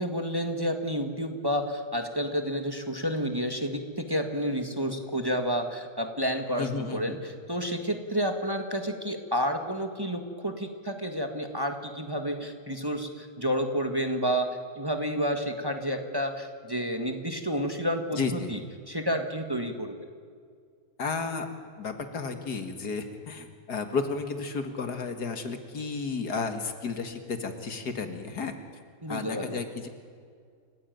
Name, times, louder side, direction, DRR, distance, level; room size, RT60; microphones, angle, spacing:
voice 1, 0.0-14.5 14.8-18.6 18.9-20.1 29.0-29.6, equal, 15° right, 5 dB, 1.7 m, -30 dB
voice 2, 6.6-7.2 18.2-18.5 21.0-21.5 21.8-28.5 29.1-29.9, left 4 dB, 75° left, 7 dB, 2.4 m, -32 dB
29.0 x 15.5 x 9.3 m, 2.1 s
omnidirectional pair, 1.7 m